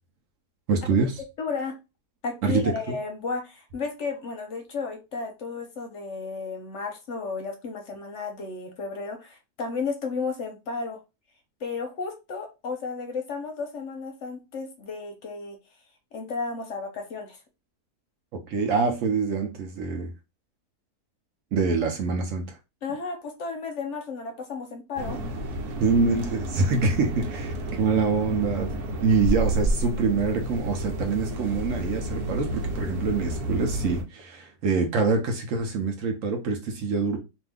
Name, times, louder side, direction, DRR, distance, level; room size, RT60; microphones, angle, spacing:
voice 1, 0.7-1.1 2.4-3.0 18.3-20.1 21.5-22.6 25.8-28.7 29.0-37.2, right 4 dB, 65° right, 0.9 m, -25 dB
voice 2, 1.4-1.8 2.2-11.0 11.6-15.6 16.1-17.4 22.8-25.2, left 4 dB, 60° left, 0.8 m, -33 dB
sound 1, 25.0-34.0, right 1 dB, 90° right, 1.1 m, -30 dB
2.7 x 2.5 x 3.4 m
omnidirectional pair, 1.6 m